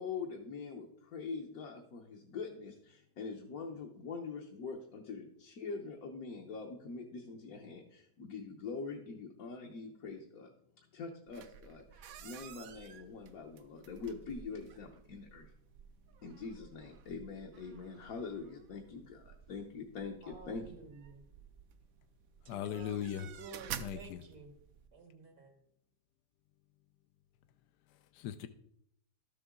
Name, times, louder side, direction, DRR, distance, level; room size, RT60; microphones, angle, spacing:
voice 1, 0.0-10.5 10.9-15.5 16.2-20.6, left 4 dB, 60° left, 1.4 m, -44 dB
sound 1, 11.3-24.9, right 9 dB, 65° right, 1.0 m, -52 dB
voice 2, 20.2-21.2 22.4-24.5 24.9-25.5, right 4 dB, 80° right, 2.2 m, -52 dB
voice 3, 22.4-23.3 23.8-24.2 27.9-28.5, left 10 dB, 80° left, 1.2 m, -39 dB
13.0 x 7.0 x 3.7 m
omnidirectional pair, 1.8 m